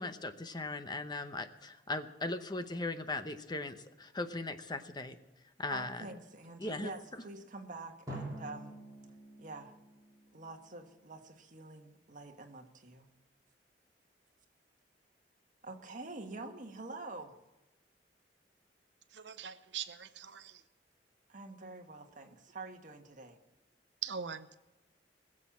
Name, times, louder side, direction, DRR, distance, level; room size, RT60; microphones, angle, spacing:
voice 1, 0.0-5.2 5.6-6.0 6.6-6.9, left 2 dB, 25° left, 9 dB, 0.8 m, -38 dB
voice 2, 5.7-8.8 9.4-9.7 10.3-13.1 15.6-17.3 21.3-23.4, right 3 dB, 45° right, 4 dB, 1.6 m, -47 dB
Drum, 8.1-11.0, right 1 dB, 20° right, 3.5 m, -47 dB
voice 3, 19.1-20.6 24.0-24.5, right 7 dB, 80° right, 11 dB, 0.8 m, -42 dB
21.0 x 7.6 x 7.3 m, 1.0 s
head